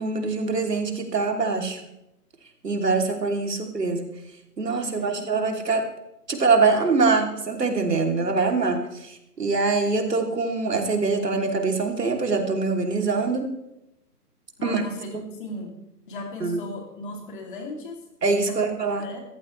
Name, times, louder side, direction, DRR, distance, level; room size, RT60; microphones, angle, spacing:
voice 1, 0.0-1.8 2.6-4.1 4.6-5.9 6.3-13.5 14.6-14.8 15.1-15.2 16.4-16.6 18.2-19.0, right 4 dB, 80° right, 3 dB, 3.2 m, -24 dB
voice 2, 4.8-5.2 14.6-15.7 16.1-18.1 18.5-18.7 19.0-19.2, left 1 dB, 30° left, 2 dB, 3.0 m, -36 dB
20.5 x 15.0 x 3.3 m, 0.84 s
hypercardioid pair, 160°, 48 cm